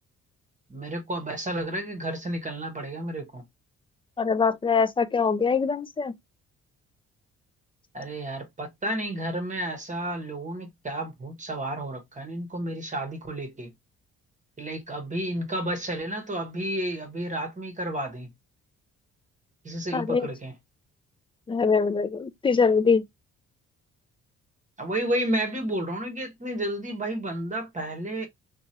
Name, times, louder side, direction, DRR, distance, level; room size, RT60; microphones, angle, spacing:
voice 1, 0.7-3.4 7.9-13.7 14.6-18.3 19.6-20.5 24.8-28.3, right 1 dB, 25° right, 0.9 m, -31 dB
voice 2, 4.2-6.1 19.9-20.3 21.5-23.0, left 5 dB, 20° left, 0.3 m, -23 dB
3.0 x 2.3 x 2.7 m
cardioid pair, 90°, 30 cm